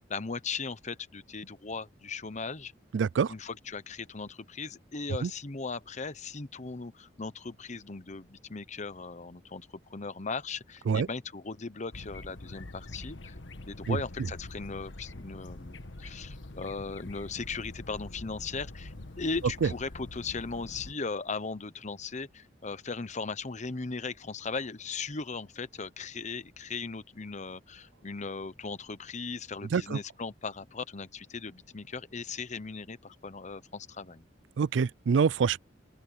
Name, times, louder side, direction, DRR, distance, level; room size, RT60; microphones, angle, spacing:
voice 1, 0.1-2.7 3.3-13.3 13.6-34.3, left 4 dB, 40° left, 1.0 m, -38 dB
voice 2, 2.9-3.3 5.2-5.3 10.9-11.1 13.9-14.0 19.6-19.7 29.7-30.0 34.6-35.6, right 6 dB, 85° right, 0.4 m, -26 dB
sound 1, 11.9-20.9, left 2 dB, 90° left, 1.5 m, -45 dB
open air
head